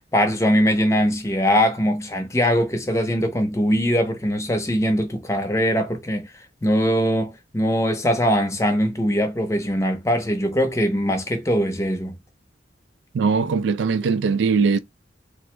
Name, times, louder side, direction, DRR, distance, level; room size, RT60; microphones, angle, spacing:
voice 1, 0.1-6.3 6.6-12.2, equal, 15° left, 0.6 m, -21 dB
voice 2, 13.1-14.8, right 5 dB, 85° right, 0.3 m, -20 dB
3.3 x 2.0 x 3.1 m
head